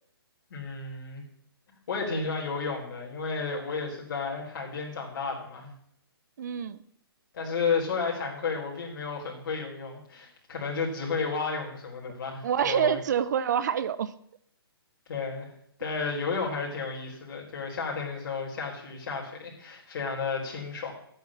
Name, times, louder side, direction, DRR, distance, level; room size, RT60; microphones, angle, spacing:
voice 1, 0.5-1.2 1.9-5.7 7.3-13.0 15.1-15.5 15.8-20.9, left 4 dB, 50° left, -2 dB, 4.2 m, -32 dB
voice 2, 6.4-6.8 12.4-14.1, right 8 dB, 45° right, 17 dB, 0.6 m, -27 dB
11.0 x 8.0 x 7.4 m, 0.69 s
hypercardioid pair, 160°, 13 cm